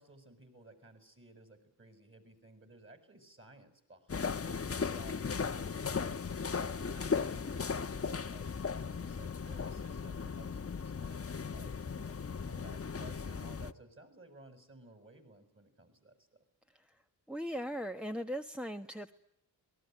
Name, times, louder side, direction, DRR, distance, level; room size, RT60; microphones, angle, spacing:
voice 1, 0.0-6.2 6.5-16.3, right 2 dB, 30° right, 9 dB, 7.1 m, -57 dB
sound 1, 4.1-13.7, left 5 dB, 35° left, 1.2 m, -37 dB
voice 2, 17.3-19.1, equal, ahead, 4 dB, 1.3 m, -39 dB
27.0 x 20.5 x 9.2 m, 0.79 s
cardioid pair, 90°, 42 cm